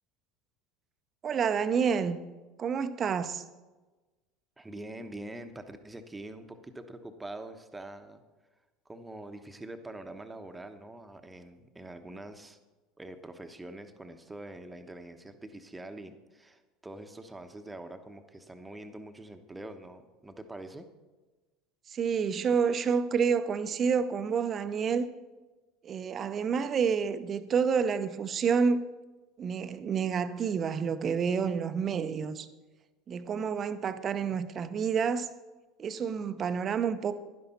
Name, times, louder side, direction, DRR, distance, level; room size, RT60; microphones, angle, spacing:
voice 1, 1.2-2.2 2.6-3.4 21.9-25.1 25.8-28.8 29.4-32.5 33.1-35.3 35.8-37.2, right 6 dB, 35° right, 0.7 m, -29 dB
voice 2, 4.6-8.2 8.8-12.6 13.0-20.9, right 1 dB, 10° right, 1.1 m, -44 dB
11.5 x 10.5 x 4.3 m
figure-of-eight pair, 70°, 0 cm